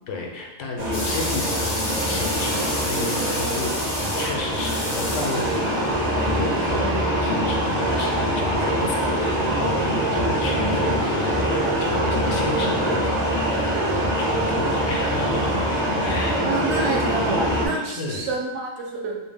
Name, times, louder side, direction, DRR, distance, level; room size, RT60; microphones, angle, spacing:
voice 1, 0.1-6.9 7.2-16.4 17.7-18.3, left 3 dB, 90° left, 1 dB, 0.9 m, -32 dB
sound 1, 0.8-17.7, right 1 dB, 20° right, 0.3 m, -24 dB
sound 2, 0.9-6.0, left 1 dB, 45° left, 0.4 m, -30 dB
voice 2, 6.7-7.6 16.0-19.2, right 3 dB, 75° right, 0 dB, 0.8 m, -29 dB
2.4 x 2.1 x 3.3 m, 1.0 s
omnidirectional pair, 1.2 m